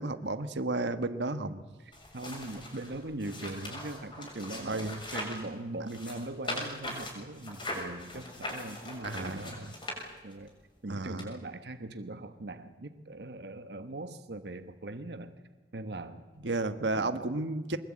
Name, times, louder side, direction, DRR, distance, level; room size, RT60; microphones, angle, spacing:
voice 1, 0.0-1.5 4.7-5.0 9.0-9.7 10.9-11.3 16.4-17.8, right 2 dB, 90° right, 10 dB, 1.4 m, -32 dB
voice 2, 1.4-9.7 10.2-10.5 10.8-15.4 15.7-16.3 17.0-17.3, right 2 dB, 70° right, 9 dB, 1.2 m, -41 dB
sound 1, 1.9-5.5 5.8-10.5 11.2-11.3, left 1 dB, 30° left, 6.7 m, -40 dB
23.5 x 21.0 x 8.8 m, 1.3 s
head